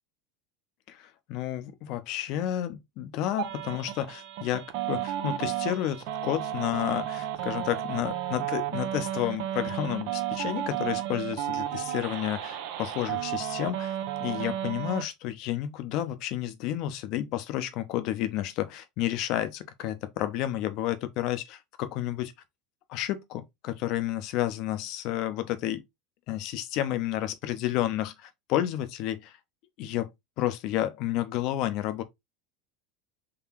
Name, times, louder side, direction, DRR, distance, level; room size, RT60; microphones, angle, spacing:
voice 1, 0.9-22.3 22.9-25.8 26.3-29.4 29.8-30.1 30.4-32.0, left 13 dB, 50° left, 0.6 m, -31 dB
sound 1, 3.4-15.0, right 12 dB, 60° right, 0.6 m, -33 dB
3.8 x 3.2 x 2.9 m
figure-of-eight pair, 75°, 0 cm